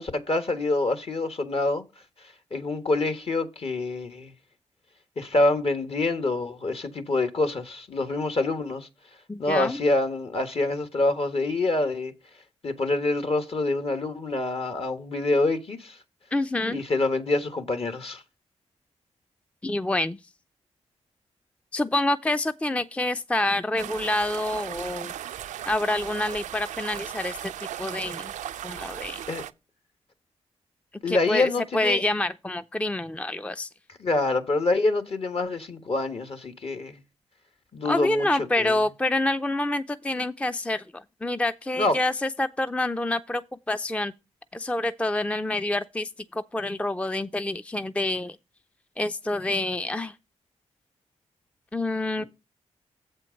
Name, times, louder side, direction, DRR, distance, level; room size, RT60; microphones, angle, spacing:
voice 1, 0.0-1.8 2.5-4.3 5.2-8.9 9.4-12.1 12.6-16.0 16.7-18.2 29.3-29.4 31.0-32.0 34.0-37.0 37.7-38.8 41.8-42.0, left 2 dB, 50° left, 1.4 m, -26 dB
voice 2, 9.3-9.8 16.3-16.8 19.6-20.2 21.7-25.1 25.7-27.5 27.8-28.3 28.6-29.2 31.1-33.7 37.8-43.4 43.7-44.1 44.5-48.4 49.0-50.1 51.7-52.2, left 1 dB, 10° left, 0.4 m, -27 dB
sound 1, 23.8-29.5, right 11 dB, 85° right, 0.4 m, -37 dB
7.7 x 4.4 x 6.4 m
supercardioid pair, 50°, 12 cm